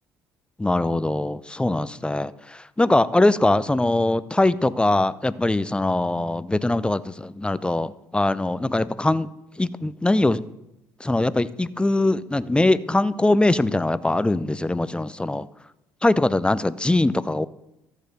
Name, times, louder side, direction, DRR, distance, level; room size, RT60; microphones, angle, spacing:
voice 1, 0.6-9.3 9.6-10.4 11.0-15.5 16.0-17.5, left 2 dB, 10° left, 17 dB, 0.5 m, -22 dB
13.5 x 6.6 x 5.3 m, 0.90 s
hypercardioid pair, 60°, 10 cm